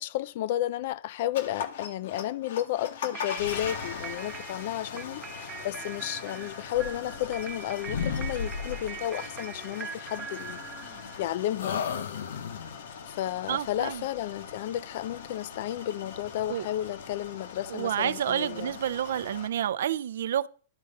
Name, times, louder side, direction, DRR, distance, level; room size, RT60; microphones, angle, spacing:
voice 1, 0.0-11.8 13.1-18.8, left 13 dB, 50° left, 0.3 m, -32 dB
sound 1, 1.3-19.5, left 6 dB, 70° left, 1.0 m, -41 dB
sound 2, 3.1-11.4, right 7 dB, 15° right, 0.5 m, -43 dB
sound 3, 6.7-7.6 7.9-9.0 10.4-11.2 11.6-12.8, left 6 dB, 85° left, 0.7 m, -34 dB
voice 2, 13.5-14.0 16.5-16.7 17.7-20.5, right 10 dB, 75° right, 0.4 m, -29 dB
11.5 x 3.8 x 5.3 m
supercardioid pair, 160°, 0 cm